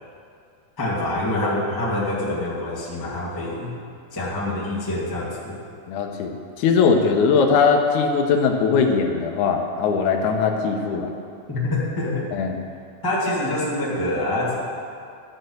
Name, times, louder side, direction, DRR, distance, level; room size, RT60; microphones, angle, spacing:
voice 1, 0.8-3.7 4.1-5.6 11.5-12.3 13.0-14.6, left 1 dB, 30° left, -6 dB, 0.4 m, -25 dB
voice 2, 5.9-11.1 12.3-12.6, left 5 dB, 75° left, 2 dB, 1.8 m, -20 dB
12.5 x 4.3 x 7.9 m, 2.3 s
omnidirectional pair, 4.3 m